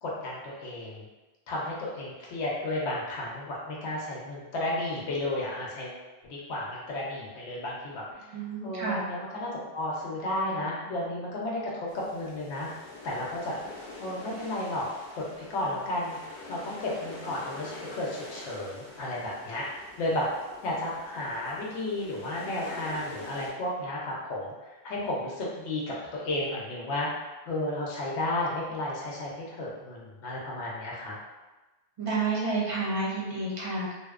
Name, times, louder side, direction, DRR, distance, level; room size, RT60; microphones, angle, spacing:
voice 1, 0.0-1.1 1.5-6.0 6.2-8.3 8.6-12.7 13.0-14.9 15.1-16.2 16.5-20.3 20.6-31.2, left 1 dB, 90° left, -4 dB, 0.9 m, -33 dB
voice 2, 8.3-9.0 32.0-33.9, right 3 dB, 40° right, -6 dB, 0.6 m, -30 dB
sound 1, 11.9-23.5, left 2 dB, 50° left, 0.8 m, -46 dB
2.6 x 2.0 x 2.3 m, 1.1 s
omnidirectional pair, 1.1 m